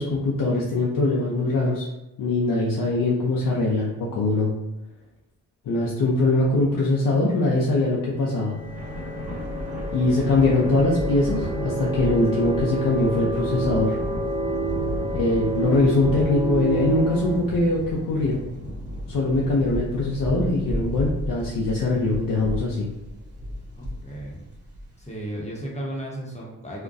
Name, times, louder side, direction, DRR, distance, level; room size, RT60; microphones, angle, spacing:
voice 1, 0.0-1.9 2.2-4.5 5.7-8.5 9.9-14.0 15.1-18.4 19.1-22.9, left 2 dB, 60° left, -4 dB, 0.6 m, -22 dB
voice 2, 5.8-6.5 14.9-15.1 23.8-24.5 25.0-26.8, right 1 dB, 15° left, -3 dB, 0.9 m, -36 dB
sound 1, 7.8-17.4, right 2 dB, 15° right, 0.5 m, -29 dB
Thunder, 8.6-25.2, equal, 35° right, 1.3 m, -33 dB
2.3 x 2.2 x 2.5 m, 0.97 s
supercardioid pair, 45°, 39 cm